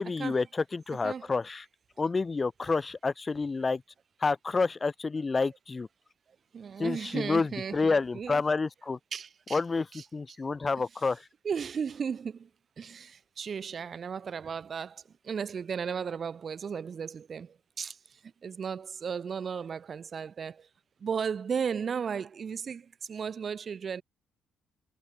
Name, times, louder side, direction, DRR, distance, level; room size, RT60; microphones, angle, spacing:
voice 1, 0.0-1.6 2.0-3.8 4.2-5.9 6.8-9.0 9.5-9.9 10.1-11.3, left 4 dB, 30° left, 1.0 m, -29 dB
voice 2, 6.5-8.4 9.1-9.6 9.9-10.0 11.4-12.5 12.8-18.0 18.4-20.7 21.0-24.0, right 6 dB, 50° right, 0.5 m, -35 dB
supercardioid pair, 60°, 0 cm